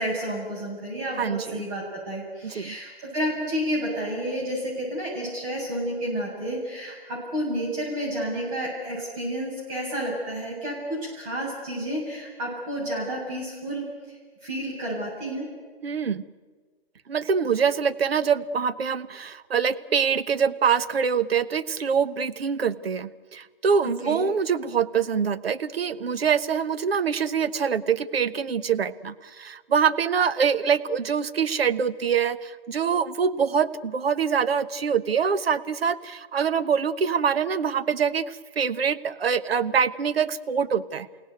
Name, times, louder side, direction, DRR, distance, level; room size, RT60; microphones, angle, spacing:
voice 1, 0.0-15.5 24.0-24.2, equal, 35° right, -4 dB, 7.8 m, -30 dB
voice 2, 1.2-1.6 2.4-2.8 15.8-16.2 17.1-41.1, right 6 dB, 70° right, 12 dB, 1.2 m, -24 dB
29.5 x 17.0 x 9.3 m, 1.5 s
hypercardioid pair, 145°, 31 cm